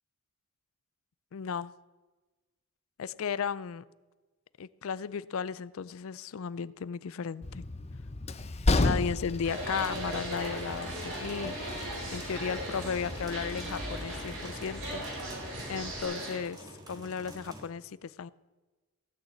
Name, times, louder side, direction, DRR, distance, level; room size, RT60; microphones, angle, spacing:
voice 1, 1.3-1.7 3.0-3.8 4.6-7.6 8.8-15.0 15.7-16.6 16.9-18.3, left 6 dB, 70° left, 18 dB, 0.4 m, -35 dB
Train, 7.4-16.0, left 2 dB, 30° left, 0.7 m, -34 dB
sound 1, 9.4-16.4, right 1 dB, 65° right, 4.3 m, -38 dB
sound 2, 9.7-17.7, equal, 20° right, 1.7 m, -48 dB
16.5 x 6.4 x 8.4 m, 1.2 s
head